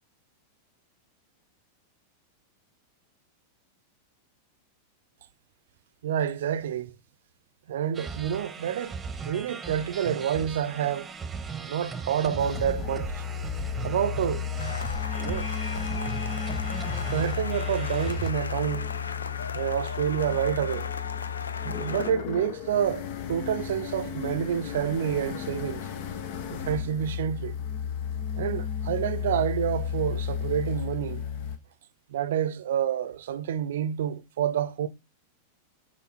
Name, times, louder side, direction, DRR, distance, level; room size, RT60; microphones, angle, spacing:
voice 1, 6.0-7.0 7.7-9.0 9.3-11.1 11.7-13.2 13.8-14.5 15.2-15.5 16.0-16.1 16.9-18.9 19.5-20.9 21.6-25.9 26.5-27.5 28.3-31.3 32.1-34.9, right 9 dB, 60° right, 0.7 m, -28 dB
sound 1, 7.9-18.3, right 5 dB, 15° right, 1.0 m, -38 dB
sound 2, 12.4-31.6, left 8 dB, 50° left, 0.9 m, -33 dB
sound 3, 14.6-22.1, left 5 dB, 70° left, 0.5 m, -37 dB
9.5 x 3.8 x 4.2 m
figure-of-eight pair, 90°, 0 cm